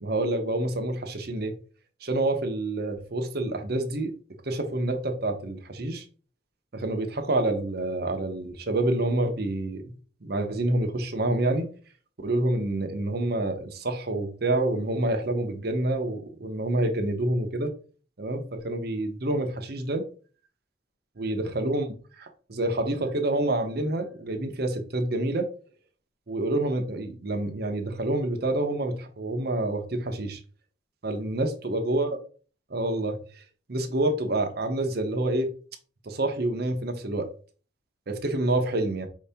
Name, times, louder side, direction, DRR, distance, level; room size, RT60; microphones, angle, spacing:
voice 1, 0.0-1.5 2.0-4.1 4.5-6.0 6.7-9.8 10.2-11.6 12.2-17.7 18.2-20.0 21.2-21.9 22.2-25.5 26.3-30.4 31.0-32.2 32.7-33.2 33.7-35.5 36.1-37.3 38.1-39.1, right 2 dB, 50° right, 0.7 m, -27 dB
4.6 x 2.8 x 3.4 m
head